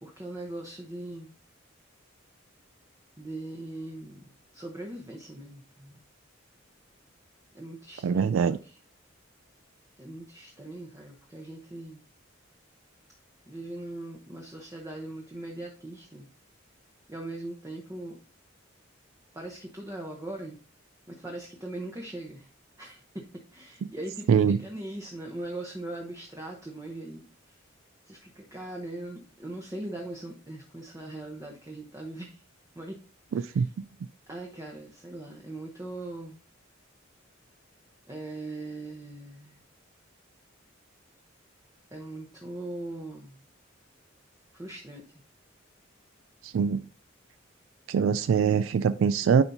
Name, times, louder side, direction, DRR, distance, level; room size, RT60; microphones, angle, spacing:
voice 1, 0.0-1.3 3.2-4.2 4.5-6.0 7.5-8.8 10.0-12.0 13.5-16.3 17.1-18.2 19.3-20.6 21.1-22.5 22.8-27.6 28.1-32.4 32.7-33.0 33.3-33.7 34.3-36.4 38.1-39.6 41.9-43.4 44.5-45.2, right 1 dB, 15° right, 0.9 m, -40 dB
voice 2, 8.0-8.6 24.3-24.6 33.3-33.7 46.4-46.8 47.9-49.4, right 6 dB, 80° right, 0.3 m, -23 dB
10.5 x 4.4 x 2.7 m
head